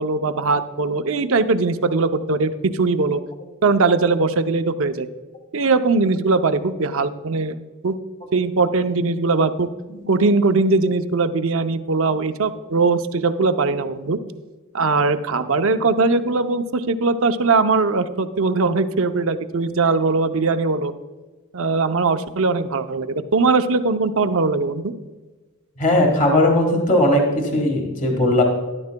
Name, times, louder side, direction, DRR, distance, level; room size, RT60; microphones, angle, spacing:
voice 1, 0.0-3.2 3.6-5.1 5.5-7.6 7.8-8.0 8.3-9.7 10.1-14.2 14.7-20.9 21.5-24.9, right 3 dB, 60° right, 9 dB, 0.6 m, -20 dB
voice 2, 25.8-28.4, left 1 dB, 35° left, 2 dB, 1.5 m, -18 dB
13.0 x 11.5 x 2.2 m, 1.3 s
head